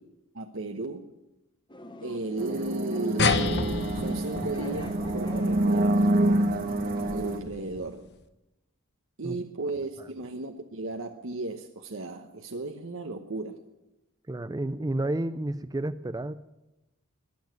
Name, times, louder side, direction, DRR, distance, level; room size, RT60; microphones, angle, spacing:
voice 1, 0.3-1.1 2.0-6.0 7.1-8.1 9.2-13.6, right 2 dB, 60° right, 1.0 m, -35 dB
sound 1, 1.7-7.3, left 2 dB, 20° left, 1.0 m, -45 dB
sound 2, 2.4-7.4, right 1 dB, 40° right, 1.3 m, -27 dB
sound 3, 3.2-8.1, left 4 dB, 50° left, 1.1 m, -32 dB
voice 2, 14.3-16.3, right 1 dB, 15° right, 0.5 m, -31 dB
21.5 x 7.2 x 9.3 m
head